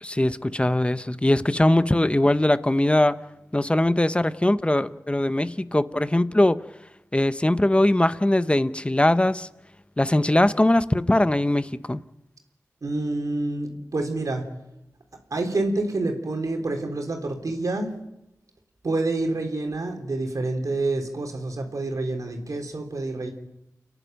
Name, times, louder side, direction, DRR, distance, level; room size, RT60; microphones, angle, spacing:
voice 1, 0.0-3.2 3.5-6.6 7.1-9.5 10.0-12.0, left 1 dB, 20° left, 14 dB, 0.9 m, -21 dB
voice 2, 12.8-14.4 15.3-17.9 18.8-23.3, right 2 dB, 70° right, 3 dB, 3.7 m, -27 dB
29.5 x 11.0 x 9.2 m, 0.88 s
wide cardioid pair, 55°, 6 cm